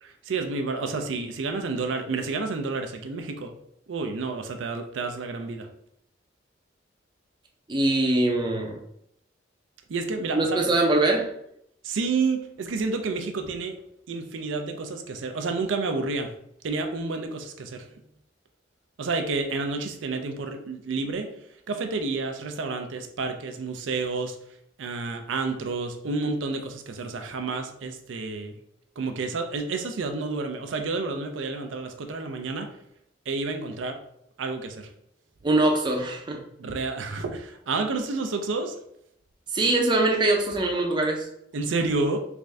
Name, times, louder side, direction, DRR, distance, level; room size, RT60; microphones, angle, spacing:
voice 1, 0.0-3.5 3.9-5.7 9.9-10.7 11.8-13.8 14.1-16.3 16.6-17.9 19.0-21.3 21.7-24.4 24.8-28.6 29.0-32.7 33.3-34.0 34.4-34.9 36.6-38.8 41.5-42.2, right 3 dB, 85° right, 6 dB, 0.5 m, -30 dB
voice 2, 7.7-8.8 10.3-11.3 35.4-36.4 39.5-41.3, right 2 dB, 25° right, 1 dB, 0.5 m, -22 dB
3.5 x 2.6 x 3.2 m, 0.74 s
head